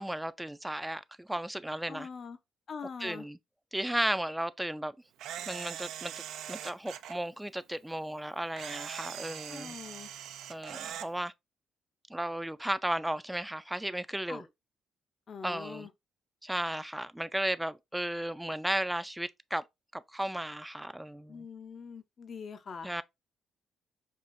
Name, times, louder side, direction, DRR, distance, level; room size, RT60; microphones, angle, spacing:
voice 1, 0.0-2.1 3.0-3.4 3.7-4.9 5.5-6.1 6.5-9.7 10.5-11.3 12.1-14.5 15.4-15.9 16.4-19.6 19.9-21.5 22.8-23.0, right 1 dB, 5° right, 0.3 m, -34 dB
voice 2, 1.9-2.4 2.7-3.3 9.5-10.1 14.3-14.5 15.3-15.9 21.3-22.9, left 5 dB, 50° left, 0.6 m, -43 dB
Camera, 5.2-7.2 8.6-11.1, right 10 dB, 85° right, 0.4 m, -42 dB
5.5 x 2.4 x 2.5 m
cardioid pair, 90°, 0 cm